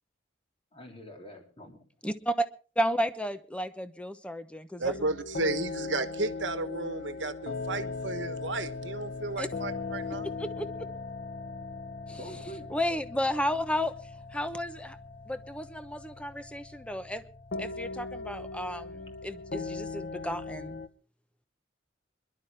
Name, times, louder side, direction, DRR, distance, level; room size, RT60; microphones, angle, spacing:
voice 1, 0.7-1.8 12.2-12.7, equal, 30° left, 3.3 m, -45 dB
voice 2, 2.0-2.5 2.8-4.9 9.4-9.5 10.4-10.7 12.1-12.2 12.7-13.9 14.3-15.0 15.3-17.2 17.6-20.8, equal, 5° left, 0.9 m, -32 dB
sound 1, 4.8-20.9, left 4 dB, 55° left, 1.0 m, -39 dB
voice 3, 4.8-10.3, right 3 dB, 70° right, 1.3 m, -33 dB
25.5 x 12.0 x 3.5 m
head